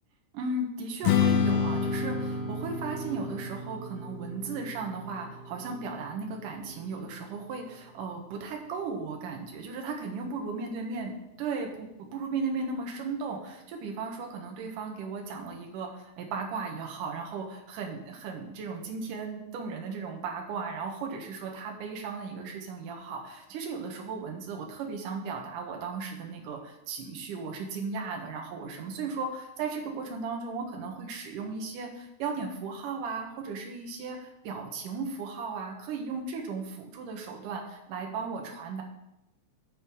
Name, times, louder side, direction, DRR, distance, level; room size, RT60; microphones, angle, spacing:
voice 1, 0.3-11.1 11.4-38.8, right 4 dB, 60° right, 1 dB, 2.5 m, -36 dB
Strum, 1.0-7.3, left 6 dB, 70° left, 2.3 m, -30 dB
10.0 x 4.3 x 6.9 m, 0.87 s
omnidirectional pair, 4.9 m